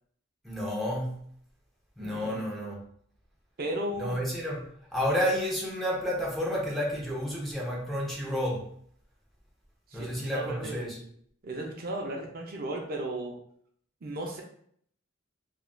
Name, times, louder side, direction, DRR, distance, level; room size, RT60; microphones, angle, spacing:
voice 1, 0.4-1.2 2.0-2.8 4.0-8.7 9.9-11.0, equal, ahead, 0.5 m, -31 dB
voice 2, 2.0-2.4 3.6-4.2 9.9-11.1 11.4-13.4 14.0-14.4, right 1 dB, 45° right, 0.5 m, -35 dB
3.0 x 2.3 x 2.2 m
head